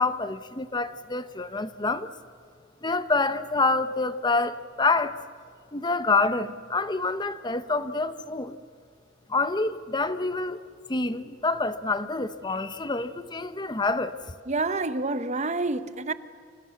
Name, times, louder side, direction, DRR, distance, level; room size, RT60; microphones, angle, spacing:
voice 1, 0.0-2.1 2.8-5.2 5.7-8.6 9.3-10.6 10.9-14.2, left 3 dB, 20° left, 0.8 m, -27 dB
voice 2, 14.5-16.1, right 3 dB, 35° right, 1.0 m, -28 dB
29.5 x 26.5 x 7.1 m
head